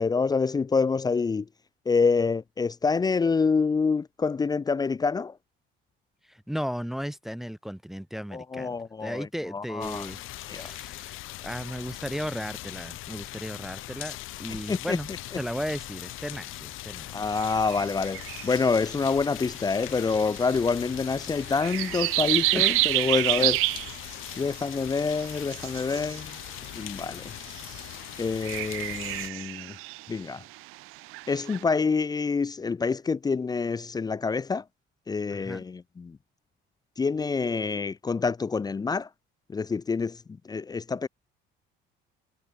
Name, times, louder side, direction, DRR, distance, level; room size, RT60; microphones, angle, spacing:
voice 1, 0.0-1.4 1.9-5.3 8.3-10.1 10.5-10.7 14.7-15.0 17.1-23.6 24.4-26.3 26.7-27.3 28.2-29.7 30.1-30.4 31.3-34.6 35.1-36.2 37.0-39.1 39.5-40.2 40.5-41.1, left 4 dB, 20° left, 1.1 m, -27 dB
voice 2, 6.3-10.2 10.5-15.1 15.4-17.1 22.5-23.0 23.4-23.5 35.3-35.6, equal, ahead, 1.1 m, -35 dB
sound 1, 9.8-29.3, left 17 dB, 75° left, 6.6 m, -40 dB
sound 2, 17.3-19.0 20.1-20.6 21.4-24.6 24.9-26.7 27.4-28.0 28.3-31.6, right 23 dB, 85° right, 0.6 m, -30 dB
cardioid pair, 160°, 21 cm